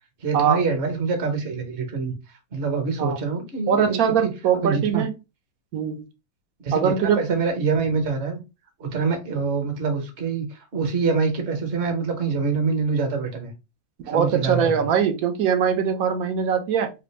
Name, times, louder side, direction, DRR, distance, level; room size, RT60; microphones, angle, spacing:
voice 1, 0.2-5.0 6.6-8.4 8.8-13.5 14.0-14.9, right 4 dB, 45° right, 1.0 m, -25 dB
voice 2, 3.7-5.1 5.7-6.0 6.7-7.4 14.1-16.9, right 7 dB, 70° right, 0.9 m, -22 dB
3.3 x 2.5 x 3.1 m
omnidirectional pair, 1.8 m